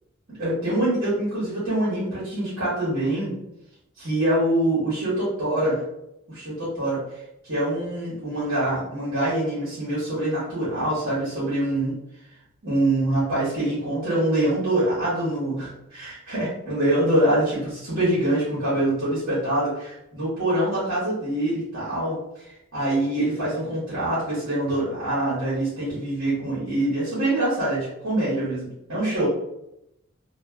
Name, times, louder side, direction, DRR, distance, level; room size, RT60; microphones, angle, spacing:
voice 1, 0.4-3.4 4.0-5.8 6.3-7.0 7.5-11.9 12.6-22.2 22.7-29.3, right 1 dB, 60° right, -9 dB, 1.4 m, -24 dB
3.1 x 2.4 x 2.3 m, 0.83 s
head